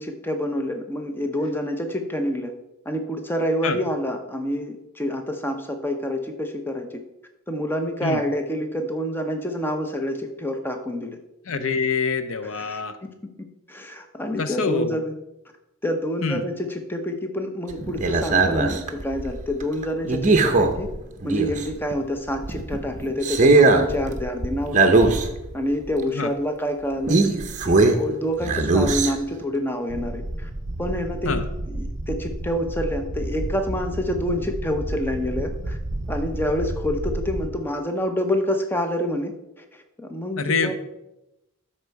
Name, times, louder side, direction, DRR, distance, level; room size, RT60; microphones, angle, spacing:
voice 1, 0.0-2.5 2.9-7.0 7.5-11.2 12.4-13.1 13.7-15.2 15.8-20.9 21.2-25.1 25.5-27.2 27.6-30.5 30.8-35.8 36.1-40.7, equal, 10° left, 5 dB, 0.7 m, -27 dB
voice 2, 11.5-13.0 14.4-15.0 16.2-16.4 26.1-26.3 31.3-31.4 40.4-40.7, left 4 dB, 65° left, 10 dB, 0.6 m, -25 dB
sound 1, 17.7-21.9 22.3-25.5 25.9-26.0 27.1-28.1 28.4-29.4 29.9-37.5, right 3 dB, 35° right, 0.7 m, -23 dB
12.0 x 4.3 x 4.6 m, 0.92 s
head